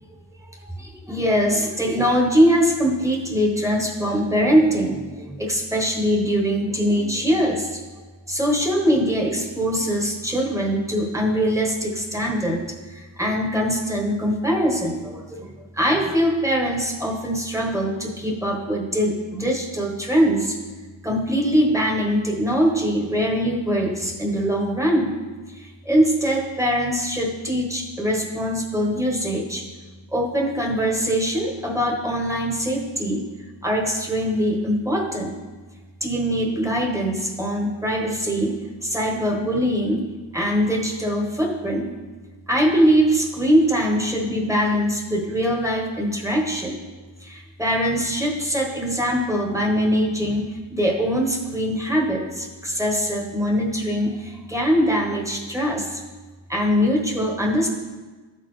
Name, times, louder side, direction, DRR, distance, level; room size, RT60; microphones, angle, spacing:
voice 1, 0.6-7.8 8.3-20.6 21.0-25.2 25.5-29.6 30.1-33.3 33.6-35.4 36.0-41.9 42.5-46.8 47.2-56.0 56.5-57.7, equal, 5° right, 0 dB, 1.1 m, -22 dB
12.5 x 4.2 x 3.2 m, 1.3 s
wide cardioid pair, 100°, 47 cm